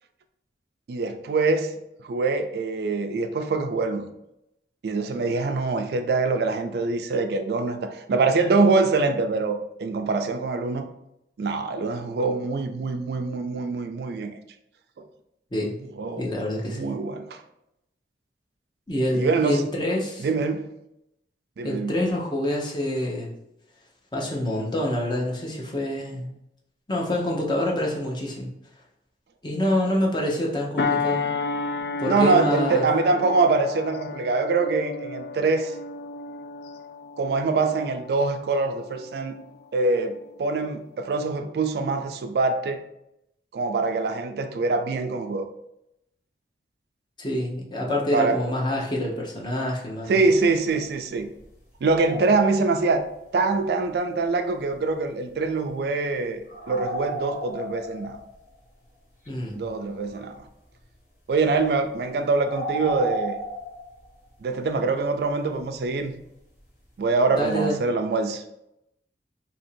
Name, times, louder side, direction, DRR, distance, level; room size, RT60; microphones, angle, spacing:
voice 1, 0.9-1.7 2.0-4.0 4.8-10.9 11.4-14.3 16.0-16.3 16.6-17.4 19.1-19.7 20.2-20.7 21.6-21.9 32.1-35.7 37.2-39.4 39.7-42.8 43.5-45.5 48.1-48.4 50.1-51.3 51.8-53.0 53.3-56.4 56.7-58.2 59.6-60.4 61.3-63.4 64.4-66.1 67.0-68.4, right 3 dB, 60° right, 7 dB, 0.3 m, -24 dB
voice 2, 16.2-16.9 18.9-20.3 21.6-23.3 24.1-26.3 26.9-28.5 29.4-31.3 32.0-32.8 47.2-50.2 59.3-59.6 67.3-67.8, left 1 dB, 25° left, -2 dB, 0.7 m, -26 dB
sound 1, 30.8-39.6 40.1-40.3, left 4 dB, 60° left, 0.3 m, -32 dB
sound 2, 50.1-50.2 50.6-51.5 51.8-52.9 56.5-58.5 59.3-59.4 59.6-59.7 60.1-60.4 61.3-61.7 62.3-64.3 66.6-66.7 67.4-67.5, right 1 dB, 45° left, 1.1 m, -34 dB
2.8 x 2.6 x 4.3 m, 0.83 s
head